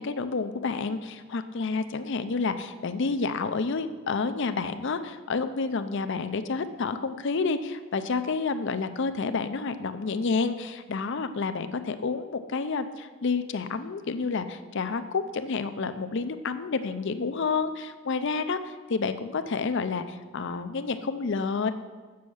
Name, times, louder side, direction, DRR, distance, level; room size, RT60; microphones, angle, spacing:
voice 1, 0.0-21.7, left 4 dB, 55° left, 10 dB, 0.5 m, -29 dB
7.5 x 7.0 x 6.3 m, 1.4 s
head